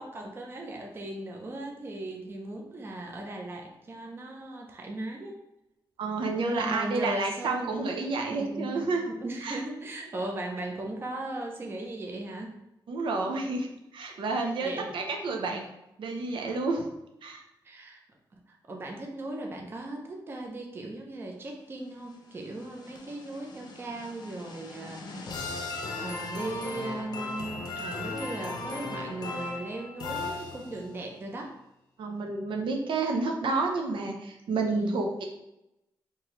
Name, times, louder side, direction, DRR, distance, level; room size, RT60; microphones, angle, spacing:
voice 1, 0.0-5.4 6.5-7.8 8.3-8.8 9.1-12.6 14.3-14.9 15.5-15.6 17.6-18.0 18.3-25.1 26.0-31.5 34.7-35.0, right 2 dB, 30° right, 1 dB, 0.6 m, -38 dB
voice 2, 6.0-9.0 9.4-9.6 12.9-13.7 13.9-15.6 16.0-16.9 17.2-17.4 32.0-35.2, right 3 dB, 80° right, 2 dB, 0.6 m, -30 dB
sound 1, 22.1-31.0, left 3 dB, 55° left, 0.6 m, -37 dB
4.6 x 2.7 x 3.0 m, 0.88 s
wide cardioid pair, 180°, 8 cm